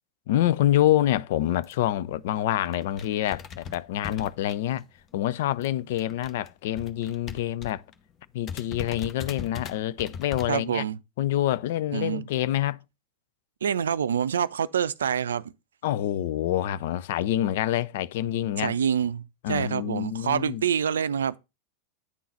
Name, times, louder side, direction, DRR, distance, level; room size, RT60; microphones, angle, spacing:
voice 1, 0.3-4.8 5.1-7.8 8.3-10.8 11.2-12.8 15.8-18.8 19.4-20.6, left 13 dB, 60° left, 0.4 m, -26 dB
sound 1, 1.6-1.9 2.4-2.5 2.6-5.0 5.3-7.9 8.2-8.3 8.5-10.5, left 7 dB, 30° left, 0.9 m, -39 dB
voice 2, 10.5-11.0 11.9-12.2 13.6-15.5 18.6-21.4, right 8 dB, 75° right, 0.4 m, -26 dB
9.5 x 3.9 x 5.5 m
figure-of-eight pair, 85°, 0 cm